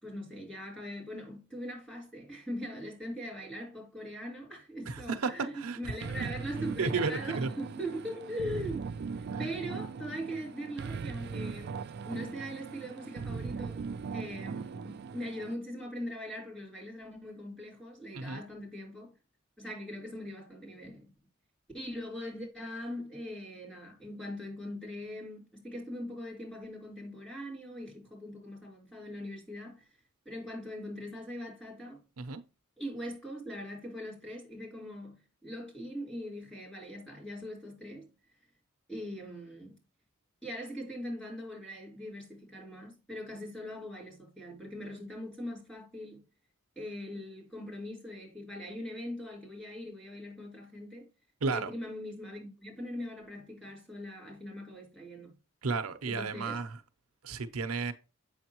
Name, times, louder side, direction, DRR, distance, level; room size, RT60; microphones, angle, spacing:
voice 1, 0.0-13.8 14.1-19.1 19.6-21.1 21.7-29.9 30.3-32.0 32.8-38.1 38.9-39.8 40.4-46.2 46.8-51.1 51.5-55.3 56.0-56.6, equal, 5° left, 3.8 m, -41 dB
voice 2, 4.9-5.8 6.8-7.5 9.3-9.5 18.1-18.4 32.2-32.4 51.4-51.7 55.6-56.8 57.2-57.9, right 4 dB, 85° right, 0.8 m, -33 dB
sound 1, 6.0-15.5, right 5 dB, 50° right, 0.3 m, -39 dB
8.0 x 6.5 x 3.0 m
head